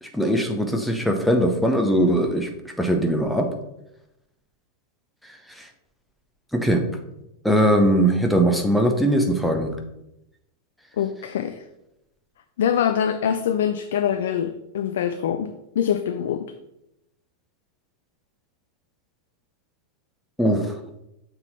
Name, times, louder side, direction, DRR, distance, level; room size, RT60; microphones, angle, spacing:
voice 1, 0.0-2.5 2.8-3.5 5.6-5.7 6.5-6.9 7.4-9.7 20.4-20.7, right 1 dB, ahead, 2 dB, 0.9 m, -20 dB
voice 2, 11.0-11.6 12.6-16.5, left 9 dB, 60° left, 8 dB, 0.4 m, -24 dB
6.9 x 3.5 x 4.1 m, 0.87 s
figure-of-eight pair, 90°, 0 cm